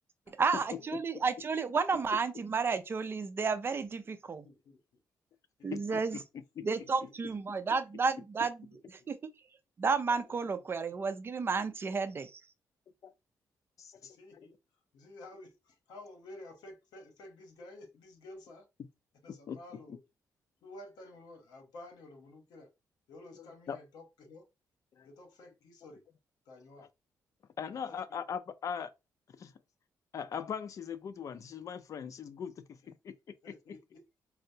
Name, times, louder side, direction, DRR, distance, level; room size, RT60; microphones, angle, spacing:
voice 1, 0.4-4.5 5.6-6.2 6.6-8.6 9.1-9.2 9.8-12.3, right 5 dB, 35° right, 0.4 m, -31 dB
voice 2, 4.4-4.8 5.6-5.7 6.7-7.1 8.7-9.1 10.6-10.7 14.0-14.6 14.9-18.7 19.2-20.0 20.6-22.7 23.1-24.4 25.0-26.0 26.5-26.9 27.8-28.2 33.4-34.1, left 2 dB, 85° left, 0.9 m, -52 dB
voice 3, 5.7-6.2 6.6-6.7 13.0-13.1 13.8-14.5 19.3-19.6 23.4-23.8 25.0-25.1 26.8-26.9 27.6-28.9 29.4-29.5 30.1-33.1 33.5-33.6, left 7 dB, 55° left, 0.4 m, -40 dB
4.4 x 2.0 x 2.7 m
cardioid pair, 95°, 7 cm